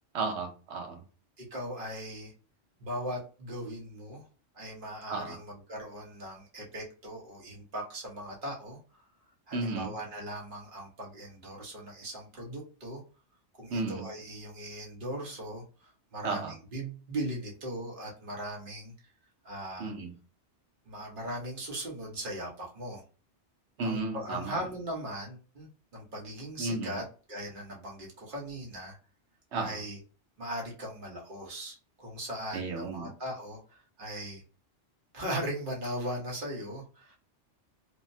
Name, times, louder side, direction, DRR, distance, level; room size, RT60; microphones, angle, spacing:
voice 1, 0.1-1.0 5.1-5.4 9.5-9.9 13.7-14.1 16.2-16.5 19.8-20.1 23.8-24.6 26.6-27.0 29.5-29.8 32.5-33.1, right 3 dB, 70° right, 5 dB, 0.9 m, -33 dB
voice 2, 1.4-2.3 2.8-4.3 4.5-9.0 9.5-13.0 13.6-18.9 19.4-19.9 20.9-23.0 23.8-29.0 29.5-30.0 30.4-34.4 35.1-37.2, right 1 dB, 50° right, -2 dB, 1.2 m, -39 dB
3.3 x 2.0 x 2.6 m, 0.36 s
omnidirectional pair, 1.2 m